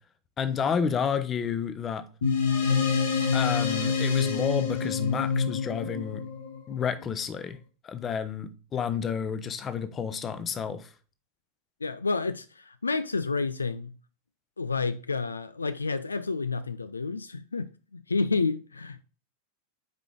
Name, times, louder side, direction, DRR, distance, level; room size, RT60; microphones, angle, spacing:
voice 1, 0.4-2.0 3.3-6.2 6.7-7.6 7.8-10.9, left 7 dB, 25° left, 0.8 m, -30 dB
sound 1, 2.2-7.0, left 5 dB, 60° left, 1.7 m, -27 dB
voice 2, 11.8-13.9 14.6-19.0, left 4 dB, 75° left, 0.3 m, -30 dB
7.6 x 4.8 x 3.6 m
figure-of-eight pair, 90°, 0 cm